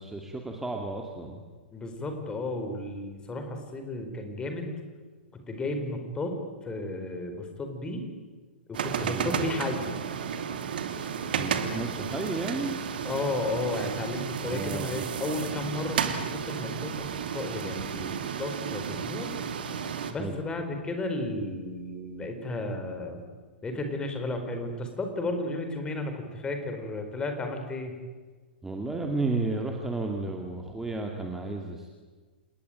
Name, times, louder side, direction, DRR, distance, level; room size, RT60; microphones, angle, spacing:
voice 1, 0.0-1.4 9.0-9.4 11.3-12.8 14.5-15.0 20.2-20.4 28.6-31.9, right 3 dB, 5° right, 1 dB, 2.5 m, -33 dB
voice 2, 1.7-4.7 5.3-8.1 8.7-9.9 13.0-19.3 20.1-23.2 23.6-28.0, left 2 dB, 15° left, 6 dB, 4.7 m, -33 dB
sound 1, 8.7-20.1, right 7 dB, 60° right, 2.7 m, -33 dB
28.5 x 19.0 x 9.3 m, 1.4 s
figure-of-eight pair, 105°, 6 cm